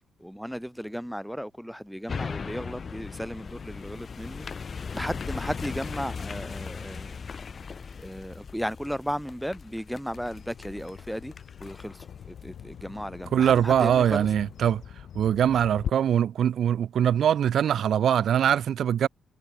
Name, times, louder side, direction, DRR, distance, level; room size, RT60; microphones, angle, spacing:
voice 1, 0.0-7.2 8.0-11.3 11.6-14.3, equal, ahead, 1.3 m, -35 dB
sound 1, 2.1-13.5 14.0-14.1, left 5 dB, 45° left, 0.9 m, -38 dB
Bird vocalization bird call bird song, 10.2-15.9, left 9 dB, 70° left, 3.4 m, -41 dB
voice 2, 13.3-14.8 15.1-19.1, right 9 dB, 70° right, 0.9 m, -22 dB
cardioid pair, 95°, 0 cm